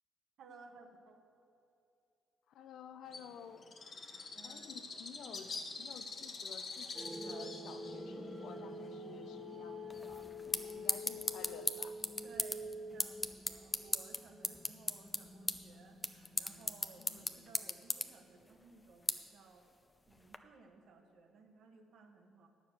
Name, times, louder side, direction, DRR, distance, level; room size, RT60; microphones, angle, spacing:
voice 1, 0.4-1.2 4.3-4.7 5.2-5.4 10.5-11.0 12.2-19.7 20.1-22.5, right 4 dB, 70° right, 4 dB, 1.2 m, -59 dB
voice 2, 2.5-3.7 4.4-5.5 5.8-10.3 10.8-12.0 17.0-17.3, left 7 dB, 80° left, 10 dB, 0.7 m, -53 dB
Bird, 3.1-10.3, left 4 dB, 50° left, 1.2 m, -47 dB
sound 1, 6.9-18.0, left 1 dB, 5° right, 1.0 m, -48 dB
sound 2, 9.9-20.4, left 2 dB, 15° left, 0.6 m, -40 dB
9.7 x 6.7 x 7.7 m, 2.8 s
cardioid pair, 90°, 0 cm